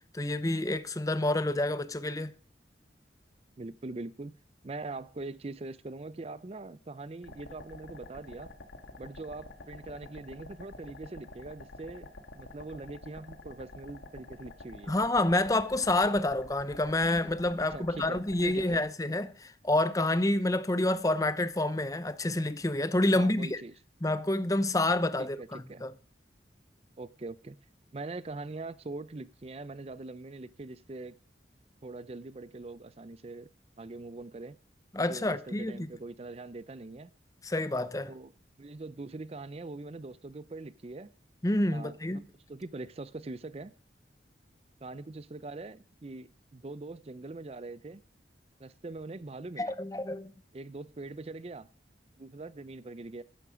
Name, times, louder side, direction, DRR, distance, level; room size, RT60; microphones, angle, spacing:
voice 1, 0.1-2.3 14.9-23.6 24.0-25.9 34.9-35.9 37.4-38.1 41.4-42.2 49.6-50.3, left 1 dB, 20° left, 0.7 m, -28 dB
voice 2, 3.6-4.4 4.6-8.5 9.0-15.0 17.7-18.8 23.1-23.7 25.2-25.9 27.0-27.6 27.9-31.1 31.8-33.5 33.8-34.6 35.0-37.1 38.1-38.3 38.6-41.1 41.7-42.2 42.5-43.7 44.8-48.0 48.6-49.8 50.5-51.7 52.2-53.2, right 2 dB, 35° right, 0.5 m, -42 dB
sound 1, 7.2-18.8, left 2 dB, 85° left, 1.9 m, -48 dB
13.5 x 10.5 x 5.0 m
head